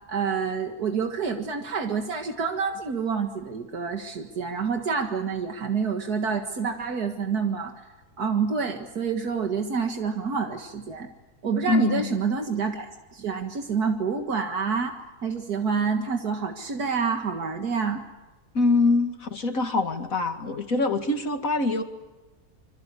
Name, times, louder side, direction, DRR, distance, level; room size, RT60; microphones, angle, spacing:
voice 1, 0.1-7.7 8.2-11.1 11.4-18.0, right 5 dB, 80° right, 4 dB, 2.3 m, -28 dB
voice 2, 11.7-12.2 18.5-21.8, left 3 dB, 60° left, 6 dB, 2.7 m, -24 dB
26.5 x 26.0 x 8.4 m, 1.1 s
omnidirectional pair, 1.6 m